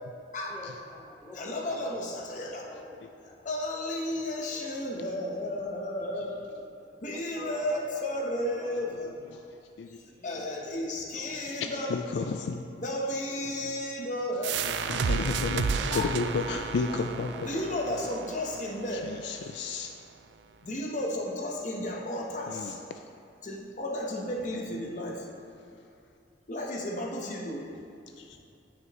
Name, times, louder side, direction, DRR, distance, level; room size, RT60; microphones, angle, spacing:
voice 1, 0.5-2.0 2.3-3.4 4.1-4.7 6.0-6.2 6.5-8.9 9.2-9.4 10.1-11.8 13.3-13.6 15.7-18.1 18.6-18.7, left 1 dB, 10° left, -4 dB, 1.0 m, -48 dB
voice 2, 1.3-2.7 3.4-6.4 7.0-9.2 9.9-12.0 12.8-14.6 15.9-16.1 17.4-19.2 20.6-22.8 23.4-25.3 26.5-27.7, left 1 dB, 40° left, 0 dB, 0.9 m, -33 dB
voice 3, 9.0-9.4 9.8-10.0 11.5-12.6 13.6-13.7 14.6-17.5 18.9-20.0 22.5-23.0 28.2-28.4, left 4 dB, 65° left, 5 dB, 0.3 m, -33 dB
sound 1, 14.4-19.8, right 5 dB, 65° right, 0.3 m, -33 dB
9.0 x 6.3 x 3.0 m, 2.7 s
head